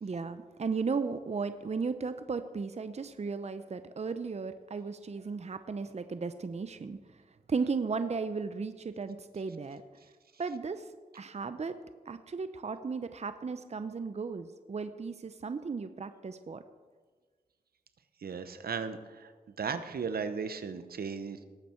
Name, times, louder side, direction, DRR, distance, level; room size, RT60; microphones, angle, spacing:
voice 1, 0.0-7.0 7.5-9.8 10.4-10.8 11.1-11.8 12.1-16.6, right 4 dB, 45° right, 11 dB, 0.7 m, -35 dB
voice 2, 18.2-21.4, right 5 dB, 70° right, 10 dB, 0.9 m, -36 dB
18.5 x 8.4 x 4.5 m, 1.4 s
cardioid pair, 45°, 16 cm